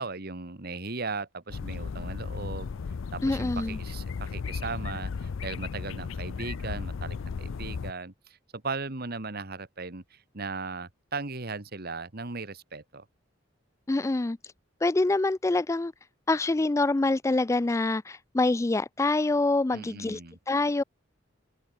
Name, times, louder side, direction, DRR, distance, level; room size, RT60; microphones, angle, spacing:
voice 1, 0.0-2.7 3.1-8.1 8.5-13.0 19.7-20.4, right 4 dB, 50° right, 1.7 m, -37 dB
sound 1, 1.5-7.9, left 5 dB, 85° left, 0.5 m, -35 dB
voice 2, 3.2-3.8 13.9-14.4 14.8-15.9 16.3-20.2 20.5-20.8, left 2 dB, 15° left, 0.3 m, -25 dB
open air
head